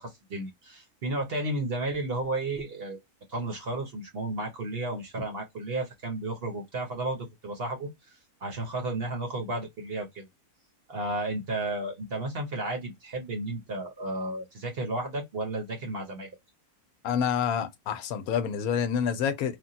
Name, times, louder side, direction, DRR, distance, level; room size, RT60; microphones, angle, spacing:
voice 1, 0.0-3.0 3.3-10.3 10.9-16.3, right 2 dB, 50° right, 0.9 m, -33 dB
voice 2, 17.0-19.6, left 7 dB, 80° left, 1.0 m, -28 dB
3.3 x 2.2 x 2.6 m
omnidirectional pair, 1.6 m